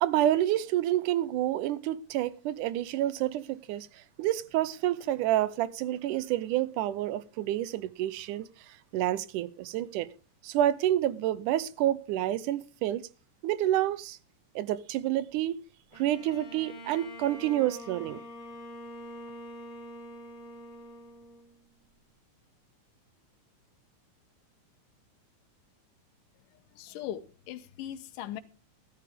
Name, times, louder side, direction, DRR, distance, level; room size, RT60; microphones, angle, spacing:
voice 1, 0.0-3.9 4.2-8.5 8.9-10.1 10.4-13.0 13.4-14.2 14.6-15.6 16.0-18.2, right 13 dB, 80° right, 2.2 m, -28 dB
Bowed string instrument, 15.9-21.7, equal, 25° left, 3.1 m, -45 dB
voice 2, 26.7-28.4, left 11 dB, 85° left, 2.6 m, -39 dB
15.5 x 12.0 x 3.6 m
omnidirectional pair, 3.7 m